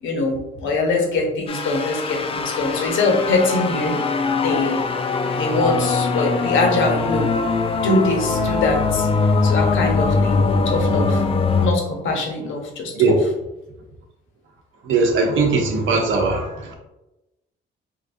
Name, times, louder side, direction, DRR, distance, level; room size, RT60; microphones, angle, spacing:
voice 1, 0.0-4.0 4.4-4.9 5.3-7.3 7.8-9.1 9.4-11.2 11.6-13.2, left 2 dB, 75° left, 1 dB, 0.9 m, -23 dB
sound 1, 1.5-11.7, left 4 dB, 30° left, 0.3 m, -21 dB
voice 2, 14.8-16.7, right 4 dB, 75° right, 2 dB, 0.8 m, -19 dB
3.9 x 2.5 x 2.6 m, 0.96 s
cardioid pair, 90°, 20 cm